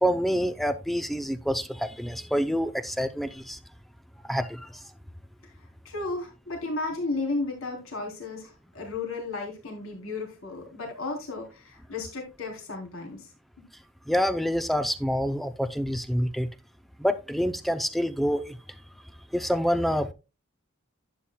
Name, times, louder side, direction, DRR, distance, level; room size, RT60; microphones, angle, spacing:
voice 1, 0.0-3.6 4.2-4.8 14.1-16.5 17.0-18.6 19.3-20.1, equal, ahead, 0.5 m, -27 dB
voice 2, 5.9-13.3, left 3 dB, 75° left, 3.5 m, -34 dB
11.5 x 8.6 x 2.2 m
head